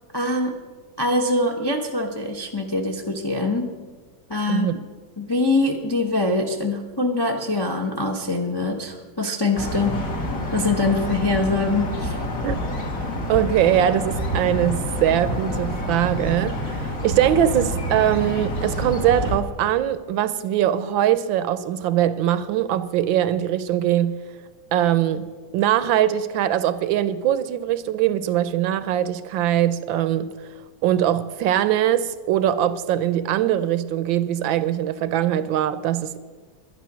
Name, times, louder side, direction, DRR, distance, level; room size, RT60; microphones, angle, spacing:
voice 1, 0.1-0.6 1.0-3.8 4.3-4.7 5.2-10.0 10.5-12.2, left 2 dB, 30° left, 1 dB, 0.4 m, -23 dB
sound 1, 9.5-19.4, equal, 45° left, 1.9 m, -28 dB
voice 2, 13.3-24.1 24.7-25.2 25.5-30.3 30.8-36.2, right 11 dB, 75° right, 13 dB, 1.4 m, -22 dB
11.5 x 11.0 x 6.1 m, 1.4 s
omnidirectional pair, 2.2 m